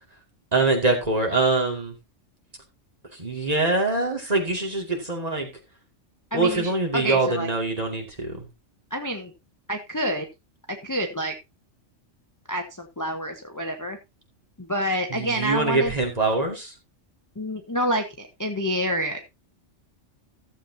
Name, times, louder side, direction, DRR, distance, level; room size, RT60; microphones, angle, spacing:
voice 1, 0.5-1.9 3.1-5.5 6.3-8.5 15.1-16.7, right 3 dB, 30° right, 0 dB, 2.4 m, -24 dB
voice 2, 6.3-7.5 8.9-9.3 9.7-10.3 10.7-11.3 12.5-14.0 14.6-15.9 17.4-19.2, equal, 15° left, 4 dB, 0.9 m, -28 dB
15.0 x 7.3 x 2.8 m, 0.23 s
omnidirectional pair, 1.3 m